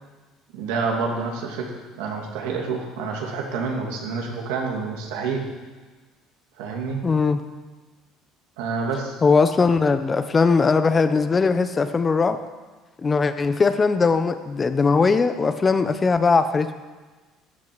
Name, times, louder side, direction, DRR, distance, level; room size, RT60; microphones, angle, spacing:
voice 1, 0.5-5.4 6.6-7.0 8.6-9.2, right 4 dB, 85° right, 0 dB, 2.6 m, -28 dB
voice 2, 7.0-7.4 9.2-12.4 13.0-16.7, left 4 dB, 25° left, 10 dB, 0.9 m, -20 dB
13.0 x 7.7 x 7.8 m, 1.3 s
supercardioid pair, 95°, 0 cm